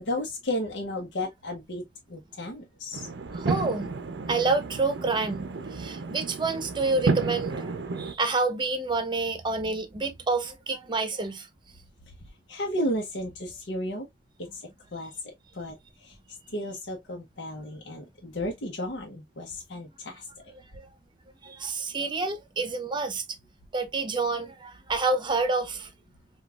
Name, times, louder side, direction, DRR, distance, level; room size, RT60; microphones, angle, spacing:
voice 1, 0.1-1.8 2.1-3.0 12.5-14.1 14.9-15.1 15.6-15.8 16.0-16.1 16.5-20.2, left 1 dB, 70° left, 0.9 m, -33 dB
sound 1, 2.9-8.1, right 3 dB, 85° right, 0.6 m, -32 dB
voice 2, 3.3-3.9 4.3-7.7 8.0-11.5 20.7-20.9 21.4-23.2 23.7-25.9, right 3 dB, 25° right, 0.7 m, -28 dB
5.1 x 2.4 x 2.3 m
head